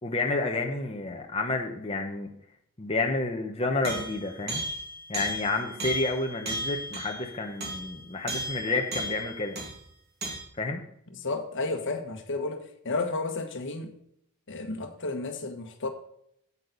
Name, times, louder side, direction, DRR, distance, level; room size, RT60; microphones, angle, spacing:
voice 1, 0.0-2.3 2.8-4.6 5.1-9.6 10.6-10.8, left 3 dB, 25° left, 1.0 m, -30 dB
sound 1, 3.8-9.8 10.2-10.4, right 1 dB, 50° right, 2.3 m, -35 dB
voice 2, 11.2-13.9 14.5-15.9, left 3 dB, 60° left, 1.4 m, -32 dB
9.0 x 8.5 x 4.0 m
head